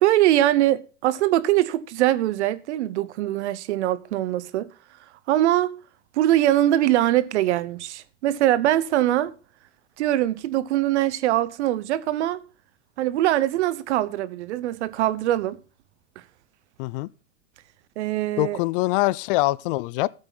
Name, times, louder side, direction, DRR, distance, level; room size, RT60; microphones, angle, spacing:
voice 1, 0.0-4.7 5.3-5.8 6.2-9.3 10.0-12.4 13.0-15.6 18.0-18.6, right 13 dB, 70° right, 1.0 m, -22 dB
voice 2, 18.4-20.1, left 20 dB, 50° left, 0.5 m, -23 dB
13.0 x 8.9 x 4.0 m
supercardioid pair, 130°, 35 cm